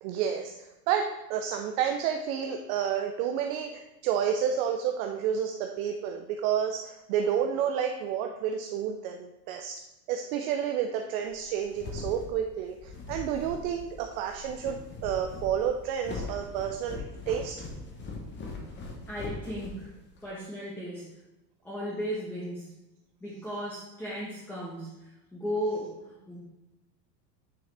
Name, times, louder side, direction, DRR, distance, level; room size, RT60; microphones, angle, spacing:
voice 1, 0.0-9.8 10.1-17.6, right 8 dB, 55° right, 4 dB, 0.7 m, -30 dB
sound 1, 11.4-20.3, left 3 dB, 20° left, 1.1 m, -41 dB
voice 2, 19.1-19.9 20.2-21.1 21.6-22.7 23.2-26.4, equal, 5° left, -6 dB, 1.2 m, -35 dB
9.3 x 3.8 x 3.4 m, 0.98 s
supercardioid pair, 135°, 49 cm